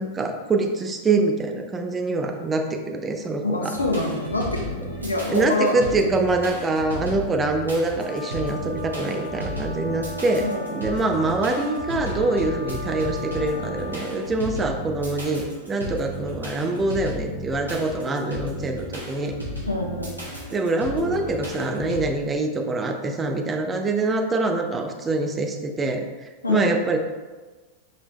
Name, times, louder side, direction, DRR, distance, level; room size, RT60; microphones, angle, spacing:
voice 1, 0.0-3.7 5.3-19.3 20.5-27.0, right 2 dB, 20° right, 4 dB, 0.5 m, -25 dB
voice 2, 3.4-5.8 10.4-10.7 19.7-20.1 26.4-26.7, left 2 dB, 80° left, 1 dB, 0.7 m, -26 dB
sound 1, 3.7-22.0, left 1 dB, 85° right, 1.2 m, -34 dB
sound 2, 7.9-14.1, left 1 dB, 55° left, 0.9 m, -37 dB
5.1 x 3.3 x 3.1 m, 1.3 s
figure-of-eight pair, 90°, 0 cm